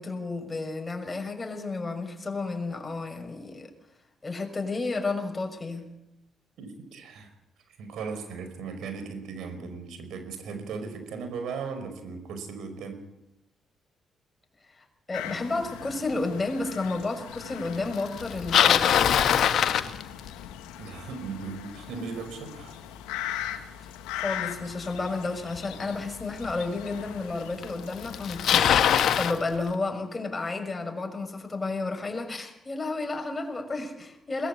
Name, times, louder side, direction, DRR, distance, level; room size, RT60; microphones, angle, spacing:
voice 1, 0.0-3.7 4.2-5.9 14.8-18.9 24.1-28.7 29.1-34.5, left 3 dB, 30° left, 4 dB, 6.3 m, -32 dB
voice 2, 6.6-7.3 7.8-13.0 20.8-22.8, right 5 dB, 75° right, 8 dB, 5.1 m, -37 dB
sound 1, 15.1-29.2, left 11 dB, 85° left, 1.8 m, -40 dB
Bicycle, 18.2-20.5 25.6-25.7 26.5-26.6 27.6-27.7 27.9-29.4, left 9 dB, 70° left, 1.5 m, -22 dB
22.0 x 20.0 x 8.4 m, 0.87 s
hypercardioid pair, 50°, 0 cm